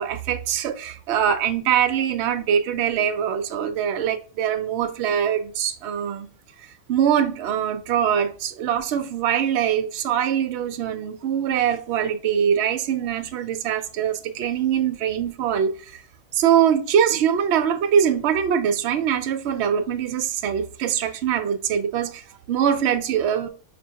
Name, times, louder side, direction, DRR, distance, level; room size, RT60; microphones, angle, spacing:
voice 1, 0.0-6.3 6.9-16.0 16.3-23.5, right 8 dB, 65° right, 0.7 m, -23 dB
5.3 x 2.6 x 2.8 m
omnidirectional pair, 1.5 m